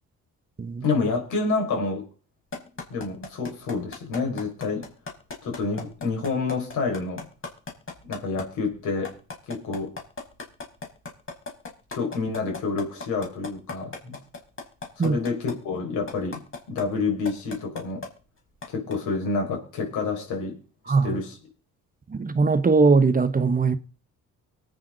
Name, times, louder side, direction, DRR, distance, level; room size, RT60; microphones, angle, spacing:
voice 1, 0.8-2.1 2.9-4.8 5.4-7.3 8.0-9.1 9.5-9.9 11.9-14.2 15.0-16.4 16.7-18.0 18.7-20.6 20.9-21.3, left 4 dB, 80° left, 5.6 m, -28 dB
sound 1, 2.5-8.4 8.8-15.5 16.1-16.8 17.3-18.1 18.6-18.9, left 4 dB, 45° left, 4.7 m, -35 dB
voice 2, 20.9-21.2 22.1-23.8, right 4 dB, 30° right, 1.1 m, -20 dB
24.0 x 8.9 x 4.0 m
cardioid pair, 90°, 30 cm